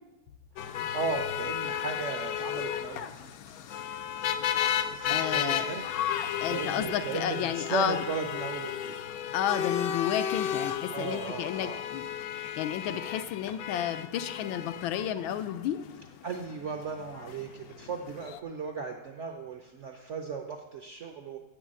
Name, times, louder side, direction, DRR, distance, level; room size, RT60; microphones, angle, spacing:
sound 1, 0.6-18.4, left 9 dB, 70° left, 0.9 m, -34 dB
voice 1, 0.6-3.3 5.0-5.8 6.5-9.0 10.9-11.8 16.2-21.4, right 5 dB, 65° right, 3 dB, 0.7 m, -36 dB
voice 2, 5.1-5.7 6.4-8.0 9.3-12.1 12.6-15.8, left 10 dB, 90° left, 11 dB, 1.5 m, -31 dB
sound 2, 5.8-11.4, left 2 dB, 90° right, 1.9 m, -57 dB
8.0 x 6.8 x 7.5 m, 1.0 s
omnidirectional pair, 2.1 m